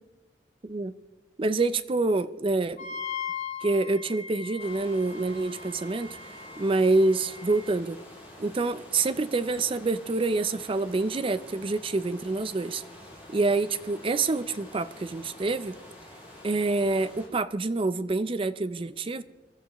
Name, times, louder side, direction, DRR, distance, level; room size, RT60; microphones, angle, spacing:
voice 1, 0.6-0.9 1.4-3.0 3.6-6.2 6.6-8.0 8.4-12.8 13.3-15.8 16.4-19.2, right 3 dB, 30° right, 0.5 m, -27 dB
Wind instrument woodwind instrument, 2.8-7.7, left 6 dB, 40° left, 1.2 m, -39 dB
sound 1, 4.6-17.3, left 1 dB, 10° right, 6.2 m, -48 dB
24.0 x 13.0 x 3.0 m
head